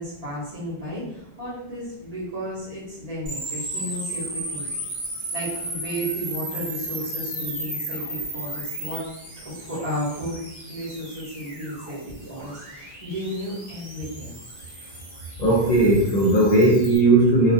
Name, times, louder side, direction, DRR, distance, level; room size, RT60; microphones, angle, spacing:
voice 1, 0.0-4.7 5.3-9.1 9.4-10.4 10.7-14.3, equal, 40° right, -8 dB, 0.7 m, -33 dB
sound 1, 3.3-17.0, right 1 dB, 60° right, 1.1 m, -35 dB
voice 2, 15.4-17.5, right 2 dB, 55° left, -5 dB, 0.5 m, -17 dB
2.2 x 2.1 x 2.6 m, 0.82 s
omnidirectional pair, 1.1 m